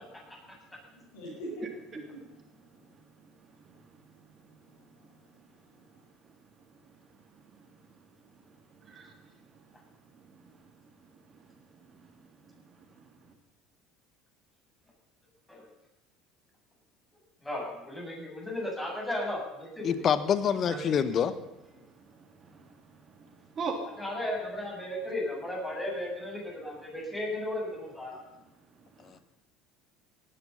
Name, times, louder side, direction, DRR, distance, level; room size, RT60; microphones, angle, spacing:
voice 1, 0.9-1.6 2.2-2.9 4.7-5.3 5.6-5.8, equal, 70° left, -1 dB, 6.4 m, -44 dB
voice 2, 2.7-6.0 6.3-13.3 20.7-21.0 21.7-24.0 28.1-29.2, right 4 dB, 35° right, 3 dB, 3.3 m, -46 dB
voice 3, 17.4-20.0 24.0-28.2, left 1 dB, 10° left, -3 dB, 7.7 m, -35 dB
voice 4, 19.8-21.3, left 8 dB, 45° left, 14 dB, 1.2 m, -26 dB
18.0 x 11.0 x 5.7 m, 0.93 s
hypercardioid pair, 65°, 0 cm